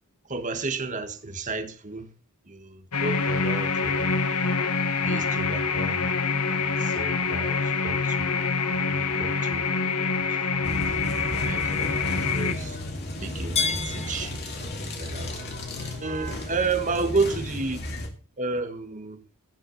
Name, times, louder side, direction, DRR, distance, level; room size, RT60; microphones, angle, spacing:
voice 1, 0.3-2.1 2.5-4.1 5.0-6.1 6.8-8.4 8.7-9.6 10.5-10.6 11.4-12.8 13.2-15.3 15.8-17.8 18.4-19.2, right 3 dB, 35° right, 1.3 m, -32 dB
sound 1, 2.9-12.5, left 4 dB, 90° left, 1.4 m, -26 dB
sound 2, 8.4-17.2, left 5 dB, 30° left, 0.9 m, -38 dB
sound 3, 10.6-18.1, left 1 dB, 50° left, 2.6 m, -34 dB
16.5 x 5.6 x 6.4 m
head